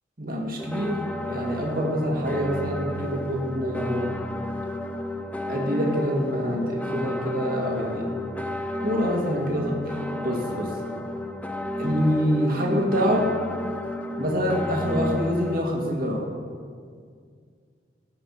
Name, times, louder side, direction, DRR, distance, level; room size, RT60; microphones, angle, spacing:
voice 1, 0.2-4.1 5.5-8.0 8.8-10.7 11.8-13.3 14.2-16.3, equal, 55° right, -1 dB, 2.0 m, -26 dB
sound 1, 0.6-15.6, left 1 dB, 10° left, 0.6 m, -32 dB
17.0 x 5.9 x 5.7 m, 2.1 s
head